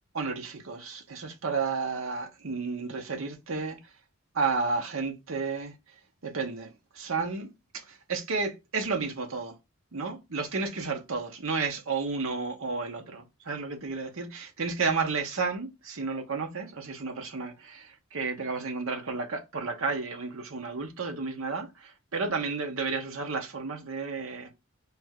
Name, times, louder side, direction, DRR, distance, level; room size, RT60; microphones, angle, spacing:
voice 1, 0.1-3.9 4.3-5.8 6.2-9.6 9.9-24.5, right 4 dB, 75° right, 0.9 m, -32 dB
3.4 x 2.4 x 4.4 m
head